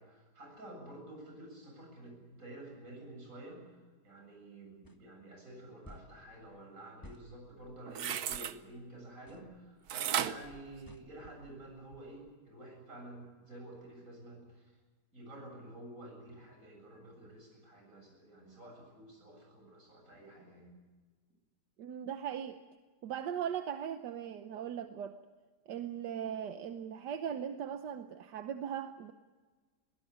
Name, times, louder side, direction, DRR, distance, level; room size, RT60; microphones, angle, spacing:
voice 1, 0.0-14.8 15.1-20.8, right 1 dB, 50° right, 1 dB, 8.1 m, -50 dB
sound 1, 4.8-5.0 5.8-6.1 7.0-7.3 8.3-8.5 9.3-9.5 10.8-11.1, left 1 dB, 15° left, 1.3 m, -53 dB
sound 2, 7.6-8.6 9.9-11.5 11.9-12.0, right 9 dB, 65° right, 1.3 m, -35 dB
voice 2, 21.8-22.6 23.0-25.2 25.7-29.1, right 9 dB, 85° right, 8 dB, 1.5 m, -39 dB
22.0 x 17.5 x 9.4 m, 1.4 s
omnidirectional pair, 1.8 m